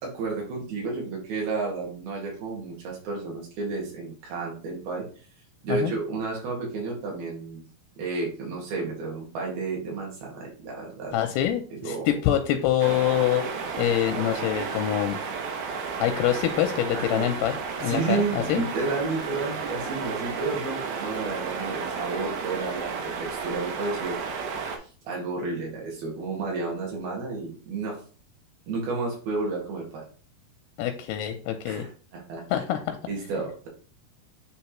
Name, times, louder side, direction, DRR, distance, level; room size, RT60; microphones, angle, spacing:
voice 1, 0.0-5.0 5.6-7.6 8.0-11.2 11.8-12.4 16.9-17.3 17.8-24.5 25.0-28.0 28.7-30.0 31.7-32.4 33.1-33.7, right 3 dB, 65° right, -2 dB, 3.5 m, -31 dB
voice 2, 11.1-13.4 13.8-15.2 16.0-18.6 30.8-31.9 32.5-33.0, left 11 dB, 85° left, 6 dB, 2.4 m, -25 dB
sound 1, 12.8-24.8, right 5 dB, 85° right, 3.2 m, -33 dB
9.5 x 3.4 x 3.0 m, 0.39 s
omnidirectional pair, 4.8 m